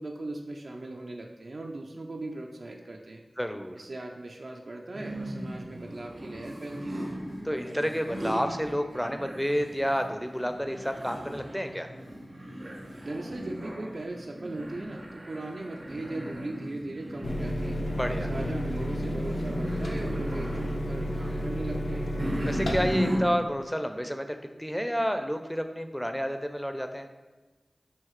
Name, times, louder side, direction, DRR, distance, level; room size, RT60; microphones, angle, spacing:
voice 1, 0.0-3.2 3.7-7.0 13.0-17.8 18.3-22.0, right 2 dB, 70° right, 1 dB, 0.3 m, -38 dB
voice 2, 3.4-3.8 7.4-11.9 18.0-18.3 22.4-27.1, equal, 5° left, 7 dB, 0.4 m, -30 dB
sound 1, 4.9-23.7, equal, 90° right, 0.9 m, -37 dB
sound 2, 17.2-22.9, equal, 85° left, 0.5 m, -31 dB
Wind instrument woodwind instrument, 19.4-23.9, right 1 dB, 65° left, 1.1 m, -45 dB
5.7 x 2.7 x 3.0 m, 1.2 s
wide cardioid pair, 45°, 0 cm